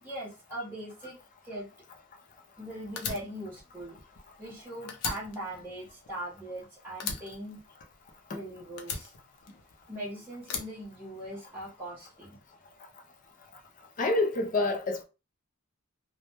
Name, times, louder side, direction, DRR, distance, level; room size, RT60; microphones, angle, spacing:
voice 1, 0.0-1.2 1.4-1.7 2.6-4.0 4.4-7.6 8.3-9.1 9.9-12.4, right 1 dB, 10° right, 0.7 m, -40 dB
Fire, 3.0-4.6 4.9-6.6 7.0-8.3 8.8-9.9 10.4-11.6, left 5 dB, 90° left, 0.5 m, -38 dB
voice 2, 14.0-15.0, left 2 dB, 35° left, 0.4 m, -27 dB
2.1 x 2.0 x 2.8 m
head